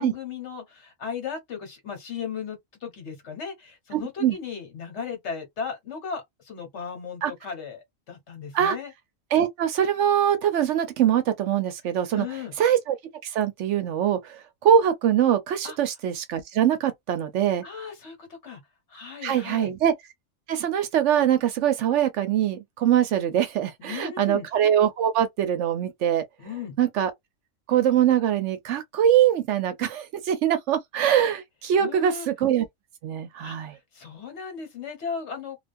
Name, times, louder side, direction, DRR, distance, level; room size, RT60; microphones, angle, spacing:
voice 1, 0.0-8.9 12.1-12.5 15.6-15.8 17.6-18.6 18.9-19.7 23.8-24.5 26.4-26.8 31.8-32.3 33.4-35.6, left 6 dB, 60° left, 1.3 m, -36 dB
voice 2, 9.3-12.3 12.6-13.0 13.2-17.6 19.2-19.9 20.5-26.2 26.8-27.1 27.7-32.6 33.0-33.8, right 10 dB, 70° right, 0.9 m, -23 dB
2.3 x 2.3 x 2.5 m
omnidirectional pair, 1.3 m